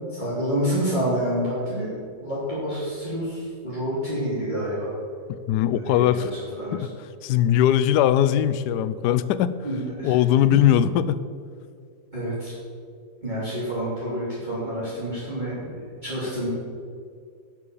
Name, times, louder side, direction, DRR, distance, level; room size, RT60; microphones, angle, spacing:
voice 1, 0.1-2.0 2.2-4.9 5.8-6.9 9.6-10.2 10.5-10.6 12.1-12.5 13.2-16.5, equal, 25° right, -10 dB, 3.1 m, -28 dB
voice 2, 5.5-6.3 6.7-6.9 7.2-9.5 10.0-11.2, left 11 dB, 75° left, 14 dB, 1.1 m, -20 dB
11.5 x 7.7 x 6.9 m, 2.2 s
omnidirectional pair, 1.9 m